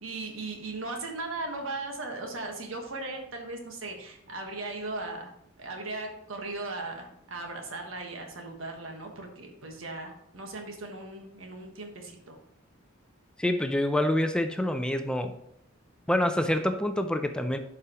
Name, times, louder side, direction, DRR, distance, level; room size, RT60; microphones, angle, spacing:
voice 1, 0.0-5.3 5.6-12.4, right 2 dB, 75° right, 2 dB, 1.4 m, -38 dB
voice 2, 13.4-15.3 16.1-17.6, left 1 dB, 5° left, 7 dB, 0.4 m, -26 dB
11.5 x 4.8 x 3.0 m, 0.72 s
head